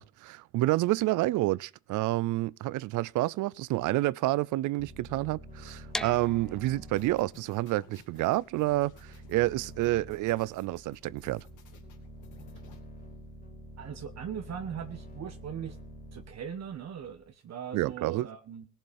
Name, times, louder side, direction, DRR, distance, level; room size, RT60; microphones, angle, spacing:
voice 1, 0.0-11.4 17.7-18.3, right 18 dB, 85° right, 0.5 m, -29 dB
sound 1, 4.8-17.3, right 1 dB, 30° left, 3.7 m, -48 dB
sound 2, 5.9-11.7, left 1 dB, ahead, 0.6 m, -43 dB
sound 3, 6.9-12.8, left 7 dB, 80° left, 2.8 m, -58 dB
voice 2, 13.8-15.8 16.1-18.7, right 8 dB, 60° right, 1.4 m, -39 dB
17.5 x 7.3 x 5.4 m
cardioid pair, 90°, 30 cm